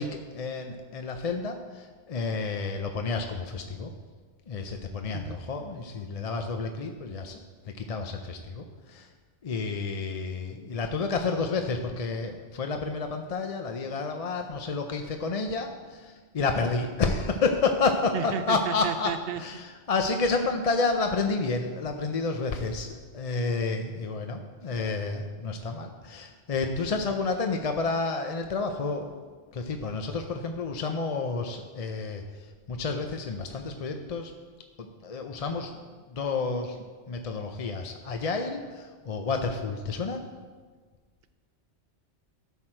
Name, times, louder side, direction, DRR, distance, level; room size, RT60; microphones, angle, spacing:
voice 1, 0.0-3.9 4.5-7.4 7.7-9.1 9.4-29.1 29.5-34.3 34.8-35.8 36.1-36.8 37.1-40.2, left 4 dB, 45° left, 5 dB, 0.5 m, -30 dB
voice 2, 18.1-19.4, right 8 dB, 65° right, 11 dB, 0.8 m, -32 dB
13.0 x 6.3 x 4.4 m, 1.5 s
omnidirectional pair, 1.1 m